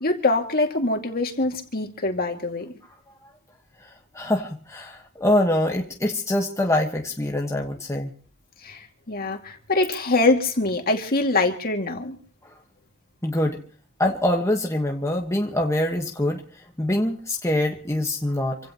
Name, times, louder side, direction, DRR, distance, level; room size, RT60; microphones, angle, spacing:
voice 1, 0.0-2.7 8.7-8.8 9.1-12.2, left 2 dB, 45° left, 3 dB, 2.3 m, -23 dB
voice 2, 4.1-8.1 13.2-13.6 14.0-16.4 16.8-18.6, left 1 dB, 15° left, 1 dB, 1.4 m, -24 dB
27.0 x 16.5 x 3.0 m, 0.42 s
head